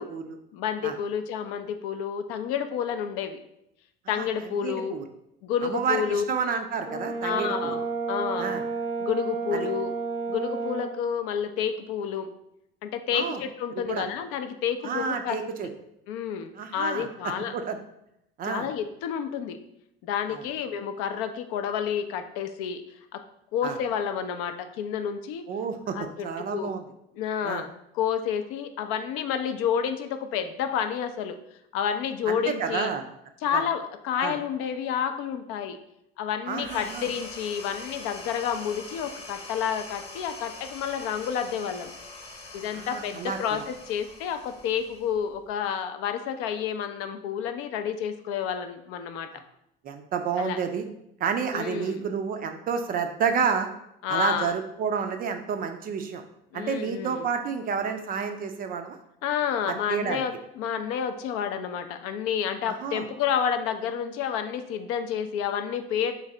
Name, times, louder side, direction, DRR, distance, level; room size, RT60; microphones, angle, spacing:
voice 1, 0.0-0.4 0.8-0.9 4.1-5.0 5.6-7.8 8.4-8.6 9.5-9.7 13.1-13.4 13.9-14.1 14.8-15.7 16.5-17.8 18.4-18.7 20.3-20.4 23.6-23.8 25.5-26.0 26.2-26.8 27.4-27.6 32.3-33.0 33.5-33.6 34.2-34.4 36.5-37.1 42.7-43.4 49.3-49.4 49.8-50.8 51.2-53.7 54.1-56.2 56.5-59.0 59.7-60.2 62.8-63.0, right 6 dB, 30° right, 7 dB, 0.4 m, -30 dB
voice 2, 0.5-3.4 4.1-5.0 5.4-6.2 7.2-8.6 9.0-9.9 10.3-12.3 12.8-15.7 16.1-17.5 18.4-19.6 20.0-22.8 23.1-23.2 23.5-25.4 25.9-26.7 27.2-31.4 31.7-32.9 33.4-35.8 36.2-41.9 42.5-49.4 50.4-50.6 51.5-52.0 54.0-54.5 56.5-57.3 59.2-66.2, left 8 dB, 50° left, 8 dB, 0.4 m, -30 dB
Brass instrument, 6.9-11.0, right 4 dB, 90° right, 0.5 m, -31 dB
sound 1, 36.6-45.5, left 3 dB, 20° left, 1.0 m, -43 dB
3.3 x 3.1 x 3.6 m, 0.79 s
figure-of-eight pair, 65°, 29 cm